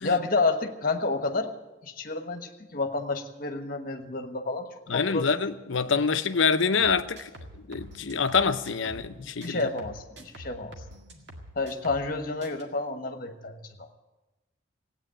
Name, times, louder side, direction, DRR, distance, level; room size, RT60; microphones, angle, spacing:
voice 1, 0.0-1.5 1.8-5.4 9.2-10.8 11.5-13.9, left 3 dB, 45° left, 1.2 m, -30 dB
voice 2, 4.9-7.3 7.7-9.7, left 5 dB, 70° left, 0.7 m, -26 dB
sound 1, 6.8-9.1 9.4-12.1 12.4-12.6, equal, 55° right, 2.0 m, -46 dB
16.0 x 9.2 x 8.9 m
head